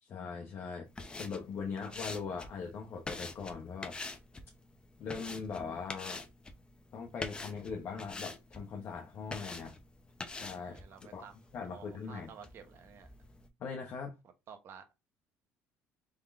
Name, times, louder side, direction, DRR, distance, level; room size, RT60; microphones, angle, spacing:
voice 1, 0.0-0.9 1.2-4.0 5.0-6.2 6.9-9.7 10.3-10.8 11.1-11.3 11.5-12.3 13.6-14.1, left 5 dB, 50° left, 1.0 m, -40 dB
sound 1, 0.9-13.5, left 3 dB, 20° left, 0.8 m, -46 dB
voice 2, 10.6-11.3 11.6-13.1 14.5-14.8, right 7 dB, 50° right, 1.2 m, -52 dB
3.7 x 3.7 x 3.6 m
cardioid pair, 120°, 5 cm